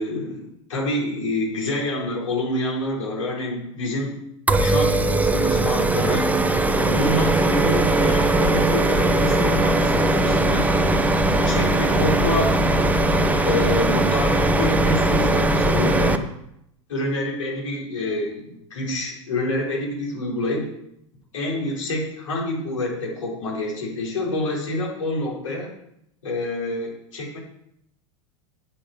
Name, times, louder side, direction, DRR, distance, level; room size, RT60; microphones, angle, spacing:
voice 1, 0.0-4.2 4.6-6.3 6.8-10.7 11.4-12.6 13.4-16.2 16.9-20.7 21.3-25.7 26.2-27.4, left 1 dB, 75° left, -2 dB, 4.2 m, -27 dB
sound 1, 4.5-16.2, right 2 dB, 10° right, 0.9 m, -19 dB
8.8 x 8.6 x 5.9 m, 0.78 s
hypercardioid pair, 85°, 16 cm